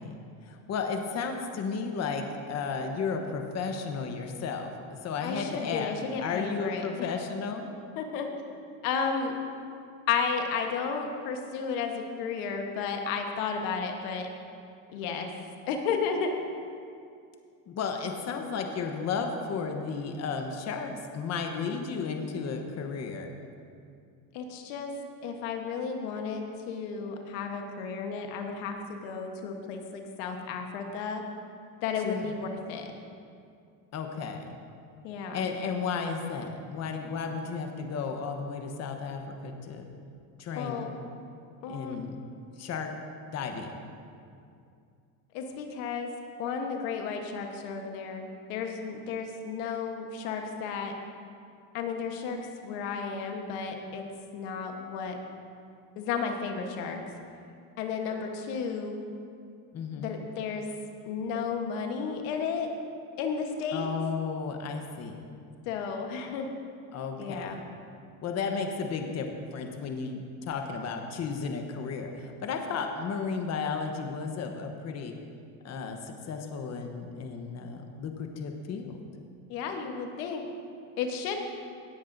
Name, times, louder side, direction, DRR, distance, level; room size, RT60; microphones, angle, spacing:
voice 1, 0.0-6.0 6.2-7.8 17.7-23.3 32.0-32.3 33.9-34.6 35.3-39.8 40.4-40.9 41.7-42.2 42.6-42.9 43.3-43.7 59.7-60.1 63.7-65.2 66.9-67.6 68.2-75.1 75.6-79.0, left 5 dB, 40° left, 4 dB, 1.0 m, -33 dB
voice 2, 5.2-7.1 8.0-8.3 8.8-9.4 10.1-14.3 14.9-15.3 15.7-16.3 24.3-24.9 25.2-31.2 31.8-32.9 35.0-35.4 40.6-40.9 41.6-42.0 45.3-46.1 46.4-50.9 51.7-54.0 54.3-55.2 56.0-57.0 57.8-59.0 60.0-60.7 61.0-62.7 63.2-63.9 65.6-66.5 67.2-67.6 79.5-80.4 81.0-81.4, left 5 dB, 80° left, 4 dB, 1.3 m, -33 dB
17.5 x 9.9 x 2.7 m, 2.4 s
supercardioid pair, 115°, 42 cm